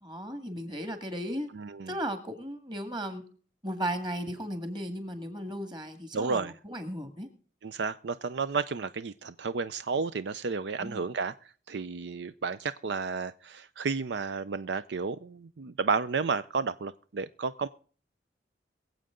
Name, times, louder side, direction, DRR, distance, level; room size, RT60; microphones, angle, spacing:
voice 1, 0.0-1.5 1.9-3.2 3.6-7.3 10.8-11.0, equal, 25° right, 1.8 m, -35 dB
voice 2, 1.5-1.9 6.1-6.5 7.6-11.3 11.7-17.7, right 4 dB, 80° right, 0.5 m, -32 dB
23.0 x 7.8 x 3.7 m
head